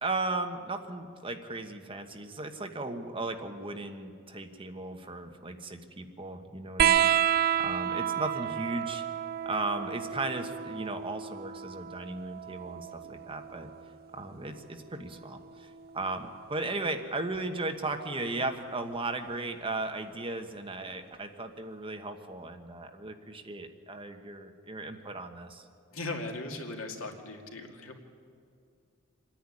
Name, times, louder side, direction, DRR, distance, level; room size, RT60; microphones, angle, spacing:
voice 1, 0.0-7.1 7.6-9.0 9.4-13.7 14.1-25.6, right 2 dB, 25° right, 5 dB, 1.2 m, -36 dB
sound 1, 6.8-13.9 15.2-16.1 17.4-17.5, right 10 dB, 45° right, 0.4 m, -30 dB
voice 2, 25.9-28.0, left 2 dB, 75° left, 2 dB, 2.4 m, -38 dB
26.0 x 10.5 x 9.8 m, 2.3 s
head